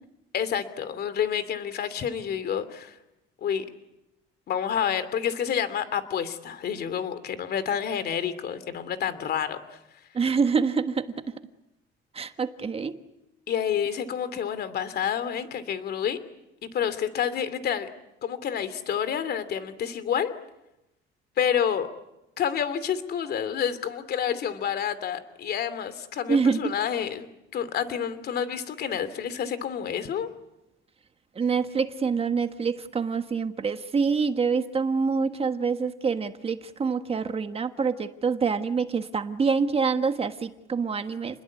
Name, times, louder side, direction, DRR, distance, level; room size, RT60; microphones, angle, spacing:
voice 1, 0.3-3.0 3.4-3.6 4.5-9.6 13.5-16.2 16.6-17.9 18.2-20.3 21.4-21.9 22.4-27.3 27.5-30.3, left 8 dB, 50° left, 13 dB, 2.7 m, -29 dB
voice 2, 10.1-11.3 12.1-13.0 26.3-26.7 31.3-41.4, right 5 dB, 30° right, 9 dB, 1.5 m, -26 dB
29.5 x 21.0 x 8.5 m, 0.92 s
cardioid pair, 125°, 21 cm